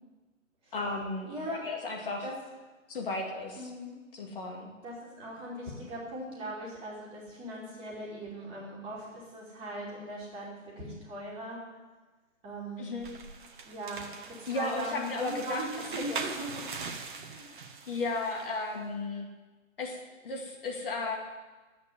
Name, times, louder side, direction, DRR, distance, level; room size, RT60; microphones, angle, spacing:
voice 1, 0.7-2.3 2.9-3.7 4.1-4.7 12.8-13.1 14.5-15.7 16.1-16.2 17.9-19.3 19.8-20.0 20.2-21.2, left 3 dB, 40° left, 0 dB, 2.3 m, -34 dB
voice 2, 1.3-1.6 2.2-2.3 3.6-3.9 4.8-11.6 12.4-12.9 13.6-14.1 14.4-16.7 17.3-17.6, right 1 dB, 15° right, -4 dB, 2.8 m, -39 dB
sound 1, 13.0-18.6, right 5 dB, 35° right, 1.3 m, -42 dB
10.5 x 8.3 x 9.9 m, 1.3 s
figure-of-eight pair, 135°, 41 cm